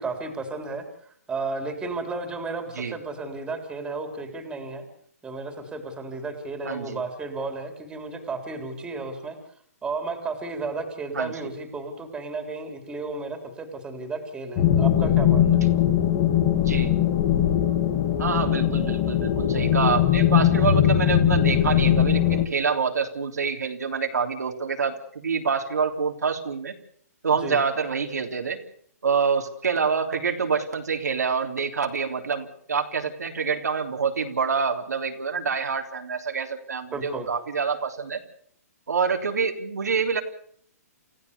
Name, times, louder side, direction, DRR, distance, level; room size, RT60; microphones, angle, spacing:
voice 1, 0.0-4.8 5.2-9.4 9.8-15.6 27.4-27.6 36.9-37.3, right 3 dB, 10° right, 6 dB, 3.9 m, -33 dB
voice 2, 6.6-7.0 11.1-11.5 16.6-16.9 18.2-26.7 27.2-28.6 29.0-38.2 38.9-40.2, right 5 dB, 85° right, 3 dB, 3.4 m, -26 dB
sound 1, 14.6-22.5, left 10 dB, 35° left, 2.5 m, -20 dB
29.0 x 16.0 x 6.9 m, 0.63 s
hypercardioid pair, 145°, 9 cm